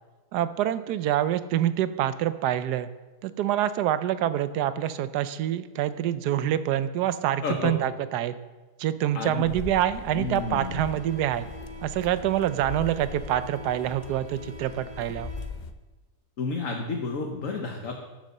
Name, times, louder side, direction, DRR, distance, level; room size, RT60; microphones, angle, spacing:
voice 1, 0.3-2.9 3.2-8.3 8.8-11.5 11.8-15.3, right 11 dB, 75° right, 13 dB, 1.2 m, -26 dB
voice 2, 7.4-7.8 9.1-9.5 10.1-10.8 16.4-18.0, left 4 dB, 55° left, 1 dB, 1.3 m, -31 dB
sound 1, 9.4-15.7, left 4 dB, 85° left, 0.4 m, -40 dB
sound 2, 10.0-15.5, equal, 45° right, 2.6 m, -46 dB
8.9 x 7.5 x 6.5 m, 1.3 s
omnidirectional pair, 1.8 m